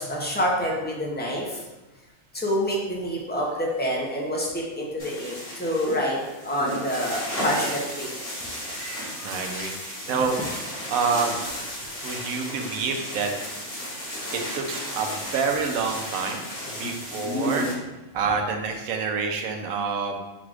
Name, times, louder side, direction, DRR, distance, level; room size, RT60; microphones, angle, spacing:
voice 1, 0.0-1.6 2.3-6.2 6.4-8.1 10.2-10.3, equal, 10° left, -3 dB, 0.4 m, -27 dB
sound 1, 5.0-17.7, equal, 45° left, 1.9 m, -33 dB
voice 2, 8.8-11.4 12.0-13.3 14.3-16.5 16.8-17.7 18.1-20.2, right 5 dB, 85° right, 3 dB, 1.1 m, -28 dB
4.1 x 2.4 x 4.7 m, 1.1 s
omnidirectional pair, 1.4 m